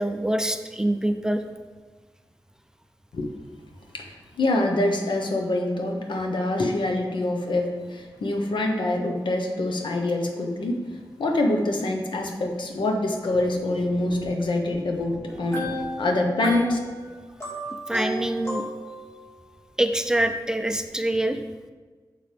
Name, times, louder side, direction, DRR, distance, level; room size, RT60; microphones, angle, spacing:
voice 1, 0.0-1.4 17.9-18.7 19.8-21.4, right 1 dB, 10° right, 7 dB, 0.5 m, -25 dB
voice 2, 3.9-10.8 11.2-16.8, left 2 dB, 90° left, 3 dB, 1.1 m, -25 dB
sound 1, 15.3-19.3, equal, 35° left, 2.3 m, -33 dB
9.0 x 6.6 x 3.4 m, 1.4 s
wide cardioid pair, 95°, 8 cm